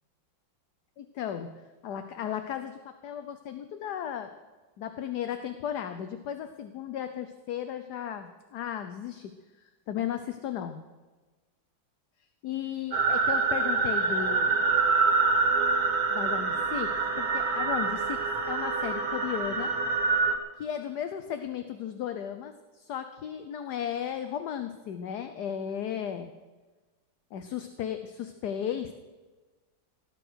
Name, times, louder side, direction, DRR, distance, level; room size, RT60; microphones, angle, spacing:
voice 1, 1.0-1.5 1.8-4.3 4.8-9.3 9.9-10.8 12.4-14.6 16.1-18.2 18.5-19.7 20.6-26.3 27.3-28.9, left 9 dB, 65° left, 8 dB, 1.3 m, -35 dB
sound 1, 12.9-20.4, right 4 dB, 50° right, 1.9 m, -26 dB
17.0 x 11.5 x 6.3 m, 1.3 s
omnidirectional pair, 2.1 m